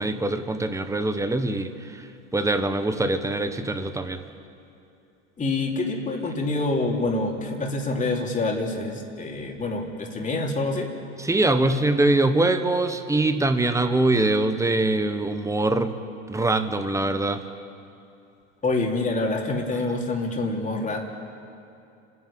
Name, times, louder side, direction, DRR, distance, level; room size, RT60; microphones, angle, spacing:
voice 1, 0.0-2.0 2.3-4.2 11.2-16.0 16.3-17.4, right 2 dB, 10° right, 8 dB, 1.3 m, -23 dB
voice 2, 5.4-10.9 18.6-21.0, left 2 dB, 20° left, 0 dB, 3.5 m, -26 dB
30.0 x 11.0 x 8.7 m, 2.7 s
hypercardioid pair, 100°, 37 cm